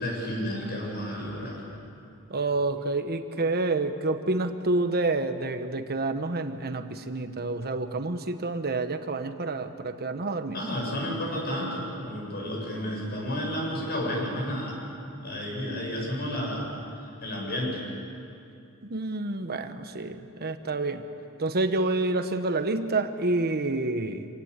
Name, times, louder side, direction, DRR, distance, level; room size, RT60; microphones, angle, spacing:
voice 1, 0.0-1.6 10.5-14.8 15.2-16.7 17.2-17.8, equal, 45° left, -2 dB, 7.4 m, -31 dB
voice 2, 2.3-10.6 18.8-21.0 21.4-24.3, right 2 dB, 45° right, 8 dB, 1.2 m, -28 dB
27.0 x 18.0 x 8.2 m, 2.6 s
head